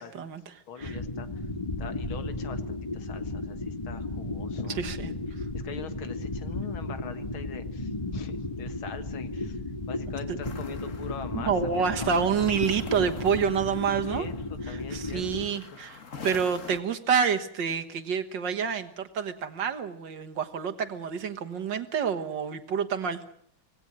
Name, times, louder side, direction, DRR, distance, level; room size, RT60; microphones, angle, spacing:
voice 1, 0.0-0.5 0.8-1.0 4.8-5.1 11.3-14.3 14.7-23.2, right 6 dB, 60° right, 7 dB, 2.0 m, -28 dB
voice 2, 0.7-1.5 1.8-9.6 9.9-12.3 13.9-14.3 14.7-15.2 15.5-15.6, left 6 dB, 80° left, 10 dB, 2.4 m, -43 dB
sound 1, 0.8-15.5, left 2 dB, 15° left, 1.9 m, -34 dB
sound 2, 10.4-16.8, left 5 dB, 40° left, 1.7 m, -46 dB
25.5 x 18.5 x 7.6 m, 0.64 s
omnidirectional pair, 2.2 m